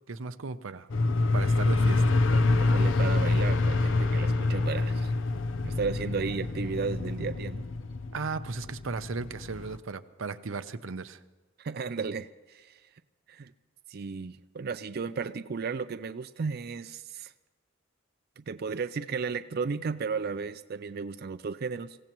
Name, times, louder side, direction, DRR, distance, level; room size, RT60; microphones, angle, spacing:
voice 1, 0.1-0.9 1.3-2.2 8.1-11.2, right 4 dB, 90° right, 11 dB, 0.7 m, -36 dB
sound 1, 0.9-9.8, left 2 dB, 75° left, 0.6 m, -26 dB
voice 2, 2.6-5.1 5.6-7.7 11.6-13.0 13.3-13.5 13.9-17.3 18.4-22.0, right 5 dB, 50° right, 11 dB, 0.4 m, -34 dB
26.0 x 16.5 x 3.1 m, 1.3 s
head